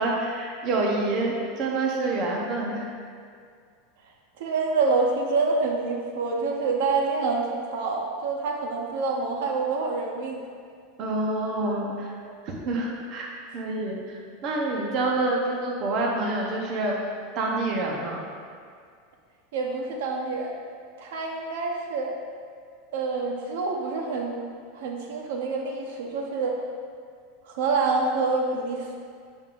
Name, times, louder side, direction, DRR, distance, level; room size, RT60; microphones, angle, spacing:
voice 1, 0.0-2.9 11.0-12.1 12.6-13.3 13.5-16.9 17.3-18.2, right 2 dB, 35° right, -1 dB, 0.8 m, -27 dB
voice 2, 4.4-10.4 19.5-20.5 21.0-22.2 22.9-24.4 24.7-26.6 27.5-29.0, right 3 dB, 70° right, 1 dB, 0.8 m, -27 dB
7.3 x 5.3 x 2.5 m, 2.1 s
supercardioid pair, 175°, 0 cm